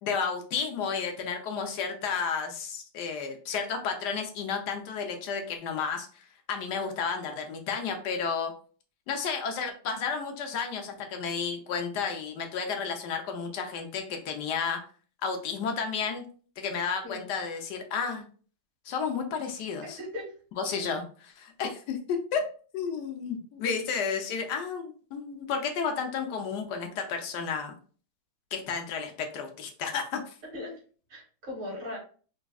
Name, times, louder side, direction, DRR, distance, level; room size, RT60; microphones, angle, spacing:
voice 1, 0.0-8.5 9.1-14.8 15.2-16.2 16.6-18.3 18.9-20.0 20.6-22.5 22.7-27.8 28.5-30.3, left 6 dB, 65° left, 4 dB, 1.1 m, -32 dB
voice 2, 19.8-20.3 30.5-30.7 31.1-32.0, left 1 dB, 75° right, -6 dB, 3.0 m, -38 dB
5.0 x 3.3 x 2.3 m, 0.41 s
omnidirectional pair, 2.3 m